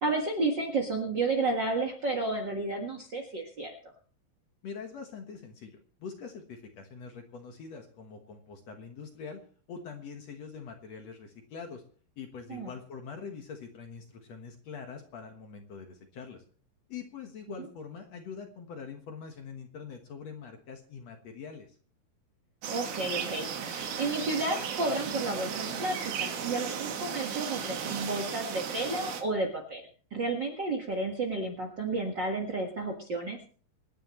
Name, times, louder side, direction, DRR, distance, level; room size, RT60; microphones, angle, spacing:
voice 1, 0.0-3.7 12.5-12.7 22.7-29.8 30.1-33.4, right 2 dB, 45° right, 3 dB, 1.6 m, -31 dB
voice 2, 4.6-9.4 9.7-11.8 12.2-16.4 16.9-21.7, left 5 dB, 55° left, 4 dB, 2.2 m, -44 dB
sound 1, 22.6-29.2, right 7 dB, 90° right, 3.6 m, -35 dB
26.0 x 10.0 x 3.1 m, 0.43 s
omnidirectional pair, 4.2 m